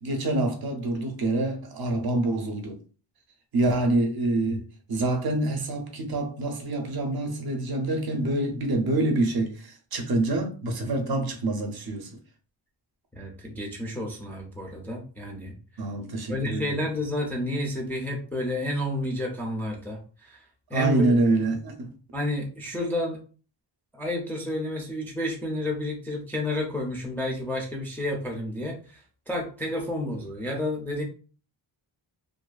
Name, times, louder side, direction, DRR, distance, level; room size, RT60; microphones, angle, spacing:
voice 1, 0.0-2.8 3.5-4.6 4.9-12.1 15.8-16.8 20.7-21.9, right 2 dB, 55° right, 0.6 m, -26 dB
voice 2, 13.1-15.5 16.3-20.4 20.7-21.1 22.1-23.2 23.9-31.0, left 1 dB, 5° left, 0.3 m, -30 dB
2.5 x 2.2 x 2.3 m
wide cardioid pair, 150°, 45 cm